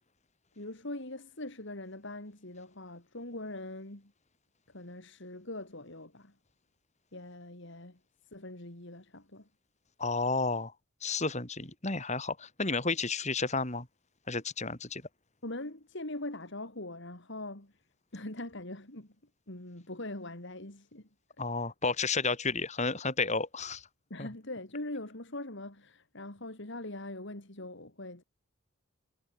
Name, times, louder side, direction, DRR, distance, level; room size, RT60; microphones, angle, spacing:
voice 1, 0.6-4.1 4.7-6.3 7.1-8.0 8.3-9.5 15.4-17.7 18.1-19.1 19.5-21.1 24.1-28.2, left 1 dB, 60° left, 3.3 m, -42 dB
voice 2, 10.0-10.7 11.0-13.9 14.3-15.0 21.4-23.9 24.2-24.3, left 3 dB, 35° left, 5.1 m, -31 dB
head